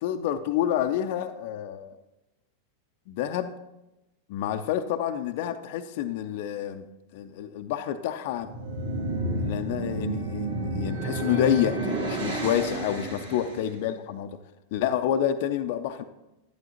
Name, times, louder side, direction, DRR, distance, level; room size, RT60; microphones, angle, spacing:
voice 1, 0.0-2.0 3.1-3.5 4.3-6.9 7.1-8.5 9.3-14.4 14.7-16.0, left 10 dB, 50° left, 8 dB, 0.5 m, -28 dB
sound 1, 8.3-13.7, right 2 dB, 75° right, 2.1 m, -31 dB
11.5 x 11.0 x 2.9 m, 0.97 s
figure-of-eight pair, 90°, 0 cm